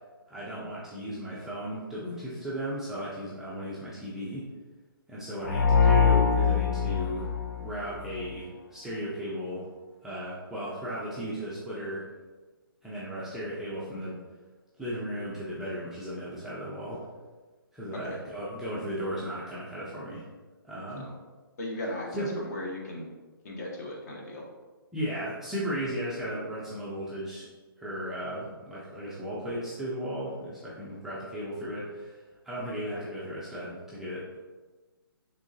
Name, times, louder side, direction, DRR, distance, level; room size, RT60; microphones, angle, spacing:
voice 1, 0.3-4.5 5.1-7.3 7.6-9.7 10.0-12.1 12.8-14.2 14.8-17.0 17.7-20.2 20.6-21.1 22.1-22.5 24.9-27.5 27.8-34.4, equal, 5° right, -9 dB, 0.3 m, -35 dB
sound 1, 5.4-8.3, left 6 dB, 70° left, 0.4 m, -23 dB
voice 2, 21.6-23.1 23.4-24.4, left 1 dB, 45° left, -1 dB, 0.8 m, -37 dB
3.5 x 3.1 x 2.6 m, 1.3 s
hypercardioid pair, 150°, 12 cm